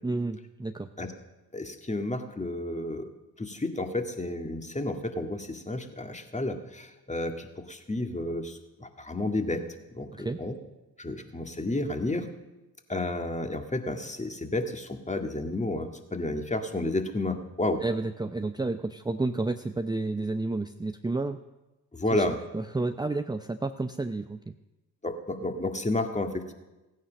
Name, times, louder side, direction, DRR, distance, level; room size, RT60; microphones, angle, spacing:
voice 1, 0.0-0.9 10.1-10.4 17.8-21.4 22.1-22.3 22.5-24.5, right 2 dB, 10° right, 8 dB, 0.7 m, -31 dB
voice 2, 1.5-3.1 3.4-9.6 9.9-10.6 11.0-12.3 12.9-17.8 21.9-22.4 25.0-26.5, left 2 dB, 15° left, 6 dB, 2.1 m, -31 dB
16.0 x 9.6 x 6.4 m, 1.1 s
hypercardioid pair, 45°, 46 cm